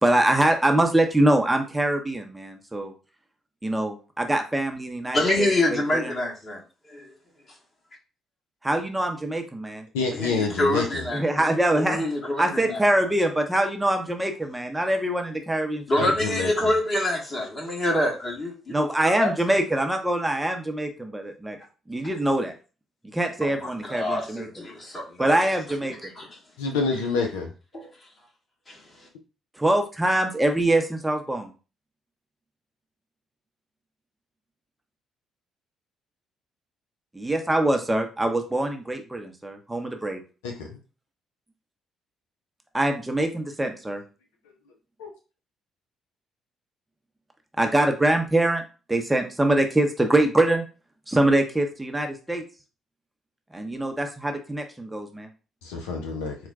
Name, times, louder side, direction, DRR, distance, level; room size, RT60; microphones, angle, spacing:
voice 1, 0.0-2.9 3.6-6.1 8.6-9.9 11.1-12.0 12.4-16.1 18.7-21.6 21.9-22.5 23.1-24.5 25.2-26.1 29.6-31.5 37.1-40.2 42.7-44.0 47.6-48.6 48.9-50.6 51.1-52.4 53.5-55.3, right 1 dB, 10° right, 4 dB, 0.6 m, -24 dB
voice 2, 5.1-6.6 6.9-7.1 10.0-12.8 15.9-19.3 23.4-25.4 26.2-26.3 27.7-27.9 28.7-29.1, left 1 dB, 35° left, -2 dB, 1.5 m, -27 dB
voice 3, 9.9-10.8 16.0-16.5 26.6-27.5 40.4-40.5 45.0-45.1 55.6-56.4, left 4 dB, 80° left, 2 dB, 0.4 m, -27 dB
4.3 x 2.2 x 2.4 m, 0.34 s
hypercardioid pair, 50°, 0 cm